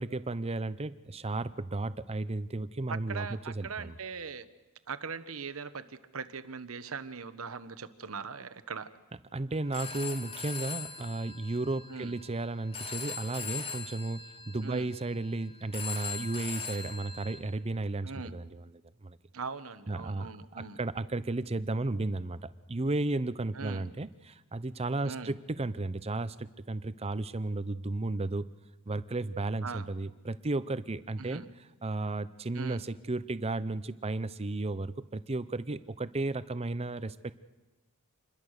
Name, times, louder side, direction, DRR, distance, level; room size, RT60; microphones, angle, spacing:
voice 1, 0.0-3.9 9.3-18.7 19.0-19.2 19.9-28.5 28.9-31.4 31.8-37.3, right 2 dB, 30° right, 14 dB, 0.7 m, -34 dB
voice 2, 2.9-4.5 4.9-8.9 11.9-12.1 14.6-14.9 18.0-18.3 19.3-20.8 23.5-23.9 25.0-25.3 29.6-29.9 31.2-31.5 32.5-32.8, right 5 dB, 70° right, 12 dB, 1.1 m, -40 dB
Telephone, 9.5-17.4, left 5 dB, 30° left, 3.5 m, -41 dB
27.5 x 21.5 x 6.6 m, 1.1 s
head